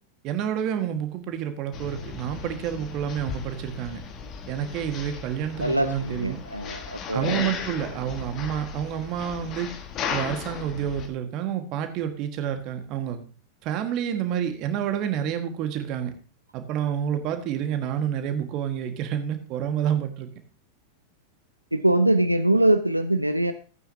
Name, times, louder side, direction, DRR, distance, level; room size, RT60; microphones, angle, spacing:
voice 1, 0.2-4.0 4.5-6.4 7.1-9.7 10.1-13.2 13.6-16.1 16.5-20.3, right 9 dB, 40° right, 7 dB, 1.5 m, -29 dB
sound 1, 1.7-11.1, left 6 dB, 35° left, 1.5 m, -36 dB
voice 2, 5.6-7.4 8.3-8.4 21.7-23.5, right 1 dB, 85° right, 9 dB, 0.5 m, -23 dB
15.5 x 9.1 x 2.7 m, 0.37 s
figure-of-eight pair, 90°, 0 cm